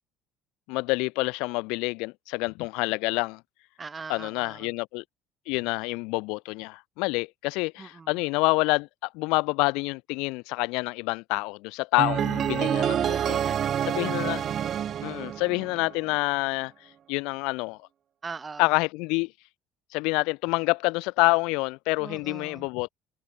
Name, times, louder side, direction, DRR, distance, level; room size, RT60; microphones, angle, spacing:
voice 1, 0.7-3.4 4.1-5.0 5.5-13.4 13.9-14.4 15.0-16.7 17.1-17.8 18.6-19.3 19.9-22.9, left 27 dB, 75° left, 0.7 m, -27 dB
voice 2, 3.8-4.7 7.8-8.2 13.1-14.3 18.2-18.7 22.0-22.7, right 4 dB, 30° right, 6.2 m, -41 dB
sound 1, 12.0-16.1, right 9 dB, 50° right, 0.3 m, -27 dB
hypercardioid pair, 75°, 0 cm